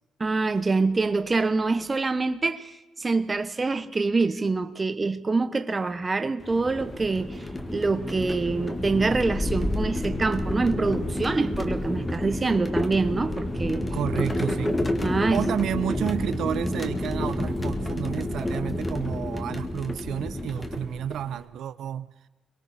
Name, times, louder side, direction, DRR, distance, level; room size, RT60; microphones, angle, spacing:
voice 1, 0.2-2.7 3.0-7.4 7.7-13.9 15.0-15.5, right 3 dB, 20° right, 1.1 m, -25 dB
sound 1, 6.4-21.4, left 1 dB, 15° left, 1.9 m, -29 dB
voice 2, 13.9-14.8 15.3-22.1, right 10 dB, 70° right, 0.8 m, -31 dB
29.5 x 22.5 x 4.3 m
cardioid pair, 140°, 0 cm